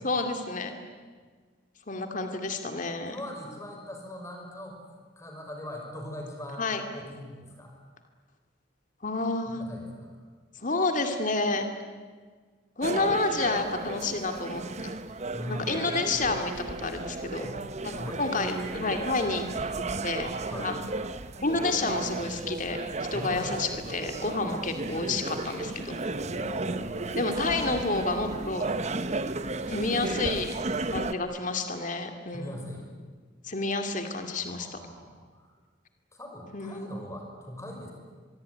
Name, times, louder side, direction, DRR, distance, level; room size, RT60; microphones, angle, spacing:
voice 1, 0.0-0.8 1.9-3.2 6.6-6.8 9.0-9.6 10.6-11.7 12.8-15.0 15.4-16.5 16.8-17.5 17.8-19.4 20.0-20.3 20.6-20.7 21.4-22.8 23.1-26.0 27.2-28.7 29.7-30.5 30.9-32.6 33.4-34.8 36.5-36.9, left 3 dB, 40° left, 6 dB, 2.4 m, -29 dB
voice 2, 3.0-4.8 5.2-7.7 9.5-10.2 15.3-15.9 17.4-17.6 17.9-18.2 20.5-20.8 23.1-23.4 24.4-25.1 26.2-27.6 32.3-32.9 34.5-35.5 36.1-37.9, left 1 dB, 15° left, 2 dB, 6.0 m, -41 dB
sound 1, 12.8-31.1, right 3 dB, 35° right, 0.9 m, -34 dB
25.0 x 22.5 x 9.7 m, 1.5 s
head